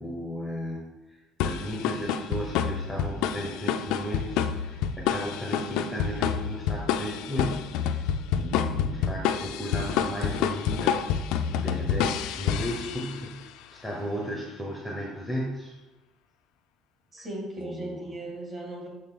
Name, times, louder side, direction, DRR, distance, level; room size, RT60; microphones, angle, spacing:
voice 1, 0.0-15.8 17.2-17.3 17.6-18.1, equal, 5° right, -3 dB, 0.9 m, -35 dB
sound 1, 1.4-13.3, left 8 dB, 85° left, 0.4 m, -28 dB
voice 2, 17.1-18.9, right 1 dB, 30° right, -1 dB, 2.1 m, -37 dB
6.6 x 6.4 x 3.8 m, 1.1 s
cardioid pair, 170°, 0 cm